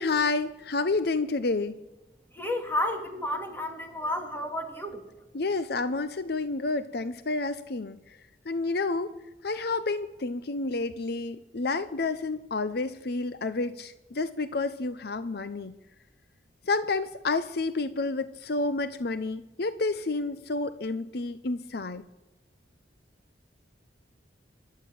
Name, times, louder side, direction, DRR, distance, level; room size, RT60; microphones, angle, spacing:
voice 1, 0.0-1.8 5.3-8.2 8.5-9.1 9.4-15.7 16.7-22.0, left 3 dB, 60° left, 13 dB, 0.8 m, -30 dB
voice 2, 2.3-5.0, left 1 dB, 10° left, 4 dB, 2.7 m, -31 dB
26.0 x 12.0 x 8.7 m, 1.1 s
head